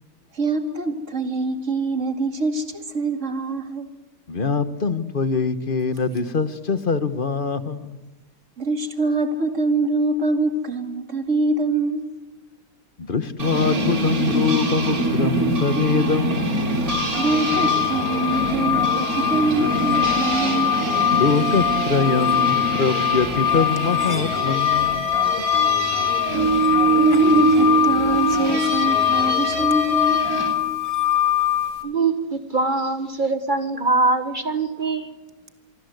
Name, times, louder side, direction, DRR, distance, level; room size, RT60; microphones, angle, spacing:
voice 1, 0.3-3.9 8.6-12.1 17.2-20.7 26.9-30.3, right 2 dB, 55° right, 7 dB, 2.5 m, -24 dB
voice 2, 4.3-8.0 13.0-16.8 21.1-25.1, left 5 dB, 40° left, 12 dB, 1.2 m, -23 dB
sound 1, 13.4-30.6, right 2 dB, 75° right, 3.8 m, -24 dB
sound 2, 16.9-30.0, left 1 dB, 65° left, 4.3 m, -35 dB
sound 3, 16.9-31.7, left 11 dB, 10° left, 3.7 m, -23 dB
voice 3, 31.8-35.1, right 3 dB, 35° right, 9 dB, 1.4 m, -23 dB
26.0 x 24.0 x 8.0 m, 1.1 s
omnidirectional pair, 1.6 m